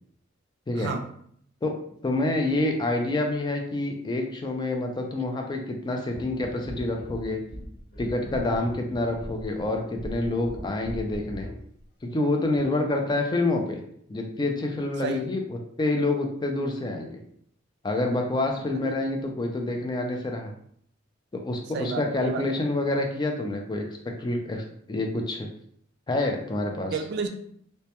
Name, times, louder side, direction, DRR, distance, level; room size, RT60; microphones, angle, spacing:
voice 1, 2.0-7.4 8.0-11.5 12.0-13.8 14.1-17.2 17.8-20.5 21.3-23.8 24.2-25.5 26.1-27.0, left 2 dB, 20° left, 3 dB, 0.3 m, -27 dB
sound 1, 6.1-11.7 12.5-12.7, equal, 55° left, 0.7 m, -40 dB
voice 2, 21.7-22.4 26.9-27.3, right 5 dB, 60° right, 6 dB, 0.3 m, -31 dB
2.1 x 2.1 x 2.8 m, 0.66 s
head